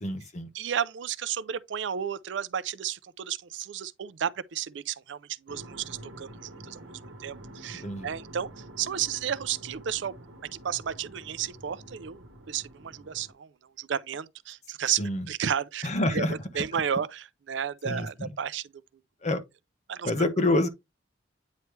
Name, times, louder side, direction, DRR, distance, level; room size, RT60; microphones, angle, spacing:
voice 1, 0.0-0.5 7.8-8.1 15.0-15.3 15.8-16.3 16.7-16.8 17.8-18.3 19.2-19.4 20.0-20.7, left 1 dB, 35° left, 1.1 m, -27 dB
voice 2, 0.5-10.1 10.5-13.5 13.8-15.0 15.3-16.2 16.5-18.7 19.9-20.3, right 8 dB, 70° right, 0.5 m, -33 dB
sound 1, 5.5-13.3, right 1 dB, 85° right, 1.1 m, -47 dB
9.3 x 3.2 x 3.2 m
head